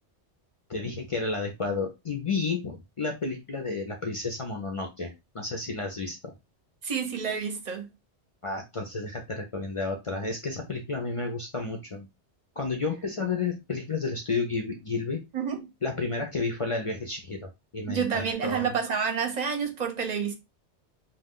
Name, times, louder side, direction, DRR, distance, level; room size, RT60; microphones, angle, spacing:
voice 1, 0.7-6.3 8.4-12.1 12.6-15.2 15.8-18.7, left 3 dB, 45° left, 0.4 m, -31 dB
voice 2, 6.8-7.9 15.3-15.7 17.9-20.3, right 6 dB, 50° right, 0.6 m, -29 dB
2.3 x 2.3 x 3.5 m
omnidirectional pair, 1.2 m